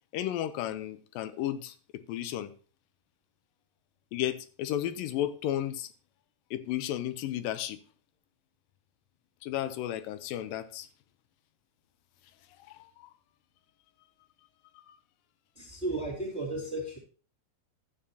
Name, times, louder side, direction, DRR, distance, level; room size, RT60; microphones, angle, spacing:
voice 1, 0.1-2.5 4.1-5.9 6.5-7.8 9.4-10.9 12.7-13.1 14.8-15.0, left 12 dB, 80° left, 13 dB, 2.3 m, -33 dB
voice 2, 15.6-17.0, right 2 dB, 25° right, -1 dB, 1.8 m, -34 dB
12.5 x 8.8 x 2.8 m, 0.37 s
omnidirectional pair, 4.2 m